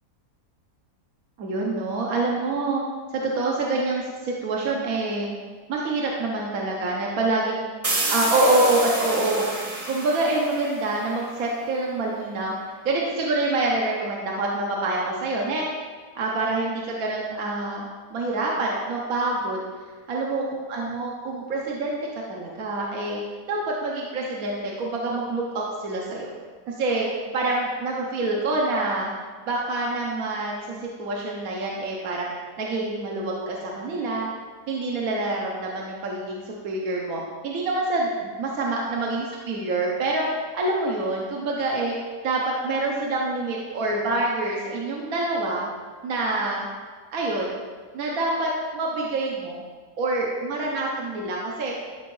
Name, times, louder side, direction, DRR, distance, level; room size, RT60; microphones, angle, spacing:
voice 1, 1.4-2.8 3.1-5.3 5.7-7.6 8.1-9.4 9.9-15.7 16.1-19.6 20.1-20.4 20.7-22.0 22.3-23.2 23.5-26.3 26.7-29.1 29.5-32.3 32.6-34.3 34.7-40.3 40.5-42.0 42.2-45.7 46.0-46.6 47.1-47.6 47.9-49.6 50.0-51.7, right 2 dB, 60° right, -3 dB, 1.3 m, -26 dB
sound 1, 7.8-11.4, right 2 dB, 25° right, 0.9 m, -29 dB
11.5 x 5.0 x 3.2 m, 1.5 s
omnidirectional pair, 1.8 m